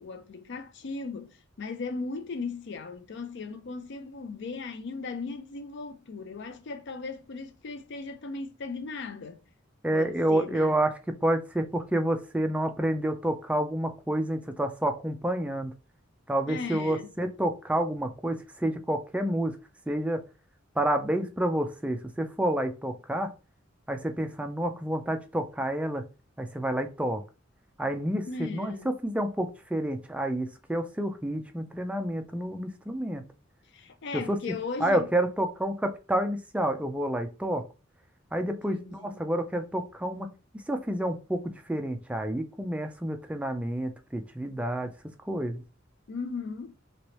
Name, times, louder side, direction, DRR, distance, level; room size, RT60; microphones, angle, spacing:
voice 1, 0.0-9.4 9.9-10.8 16.5-17.1 28.2-28.9 33.7-35.1 38.5-39.3 46.1-46.7, left 4 dB, 60° left, 0.5 m, -37 dB
voice 2, 9.8-10.9 11.2-15.7 16.3-19.6 19.9-20.2 20.8-23.3 23.9-26.0 26.4-27.2 27.8-33.2 34.3-34.4 34.8-37.6 38.3-40.3 40.7-41.4 41.7-44.9 45.3-45.6, right 1 dB, 5° right, 0.3 m, -29 dB
3.1 x 3.0 x 2.9 m
head